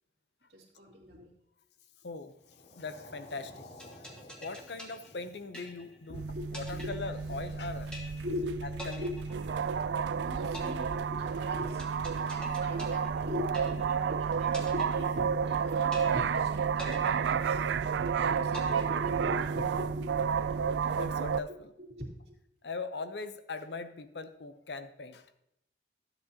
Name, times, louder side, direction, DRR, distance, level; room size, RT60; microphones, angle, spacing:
voice 1, 0.5-1.4 6.1-6.9 8.2-9.2 9.7-9.8 10.1-17.6 18.0-20.2 21.8-22.3, left 1 dB, 70° right, -1 dB, 2.4 m, -41 dB
voice 2, 2.0-2.3 2.8-4.1 4.4-7.9 8.6-9.1 20.8-21.7 22.6-25.3, left 3 dB, 75° left, 10 dB, 0.7 m, -40 dB
sound 1, 2.4-11.1, left 1 dB, 50° left, 1.5 m, -56 dB
sound 2, 3.8-6.1 6.5-7.6 7.9-8.5 8.8-10.1 10.5-14.1 14.5-15.6 15.9-16.5 16.8-18.1 18.5-19.6, equal, 5° left, 1.4 m, -46 dB
sound 3, 6.1-21.4, right 6 dB, 85° right, 0.3 m, -31 dB
13.0 x 8.0 x 2.8 m, 0.81 s
head